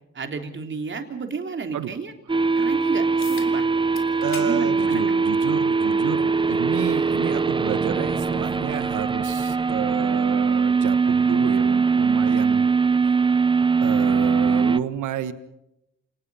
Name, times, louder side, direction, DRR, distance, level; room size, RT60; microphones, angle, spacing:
voice 1, 0.1-2.1 2.6-3.7 4.4-5.0 6.0-6.3, right 5 dB, 40° right, 5 dB, 3.4 m, -32 dB
sound 1, 2.3-14.8, right 4 dB, 15° right, 0.7 m, -21 dB
sound 2, 3.2-3.5 4.0-4.5 4.9-5.1 6.2-6.3 11.2-11.3, left 5 dB, 45° left, 3.4 m, -39 dB
voice 2, 4.2-12.7 13.1-13.2 13.8-15.3, right 10 dB, 75° right, 12 dB, 1.4 m, -31 dB
29.0 x 18.5 x 5.6 m, 0.86 s
cardioid pair, 90°, 30 cm